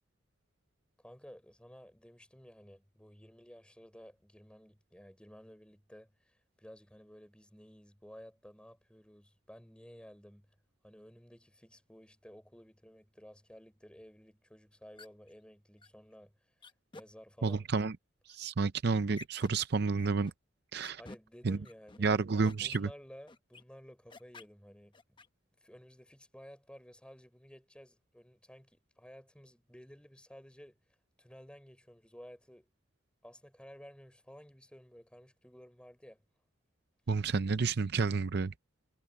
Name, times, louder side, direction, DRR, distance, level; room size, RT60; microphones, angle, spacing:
voice 1, 1.0-10.5 10.8-16.5 16.9-17.7 21.0-25.2 25.6-30.8 31.2-32.7 33.2-36.2, equal, 5° left, 3.9 m, -54 dB
sound 1, 15.0-15.3 15.8-15.9 16.6-17.0 17.5-17.8 18.3-18.7 19.1-19.5 20.0-20.3 20.8-21.2 21.6-22.0 22.4-22.8 23.3-23.6 24.1-24.5 24.9-25.3, left 3 dB, 25° left, 1.0 m, -50 dB
voice 2, 17.4-18.0 18.3-20.3 20.7-21.0 21.4-21.6 22.0-22.9 37.1-38.5, right 4 dB, 55° right, 0.5 m, -30 dB
head